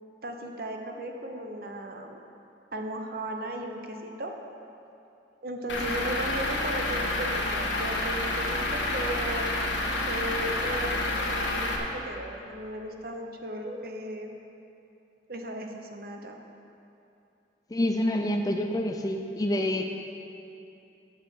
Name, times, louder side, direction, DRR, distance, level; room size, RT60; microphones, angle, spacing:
voice 1, 0.2-2.2 2.7-4.3 5.4-9.5 10.1-14.4 15.3-16.4, right 1 dB, 50° right, 3 dB, 0.9 m, -36 dB
Truck / Idling, 5.7-11.8, left 2 dB, 80° left, 1.4 m, -29 dB
voice 2, 17.7-19.9, left 1 dB, 20° left, 5 dB, 0.4 m, -27 dB
9.4 x 6.6 x 7.4 m, 2.8 s
head